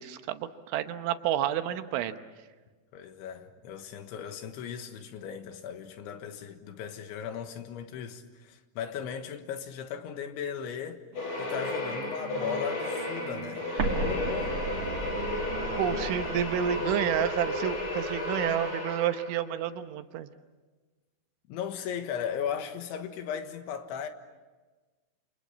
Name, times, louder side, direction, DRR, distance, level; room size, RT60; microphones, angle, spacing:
voice 1, 0.0-2.2 15.8-20.3, right 10 dB, 80° right, 3.3 m, -30 dB
voice 2, 2.9-11.0 11.4-13.7 14.0-14.6 21.5-24.1, left 8 dB, 75° left, 3.7 m, -37 dB
sound 1, 11.1-17.0, right 7 dB, 60° right, 2.7 m, -45 dB
sound 2, 11.2-19.4, left 2 dB, 55° left, 7.1 m, -33 dB
Explosion, 13.8-18.5, right 3 dB, 40° right, 2.8 m, -36 dB
29.0 x 27.5 x 7.4 m
omnidirectional pair, 5.7 m